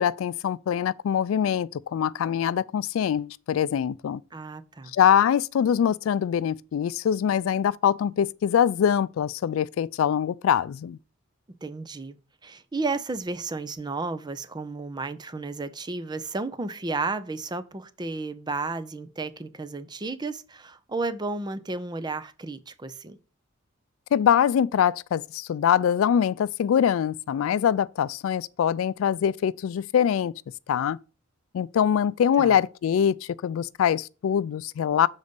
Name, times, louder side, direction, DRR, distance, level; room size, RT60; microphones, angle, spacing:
voice 1, 0.0-4.2 4.9-11.0 24.1-30.3 30.7-31.0 31.5-35.1, left 8 dB, 80° left, 0.3 m, -23 dB
voice 2, 4.3-4.9 11.6-12.2 12.4-23.2 32.4-32.5, right 3 dB, 20° right, 0.5 m, -33 dB
6.6 x 4.0 x 5.1 m
head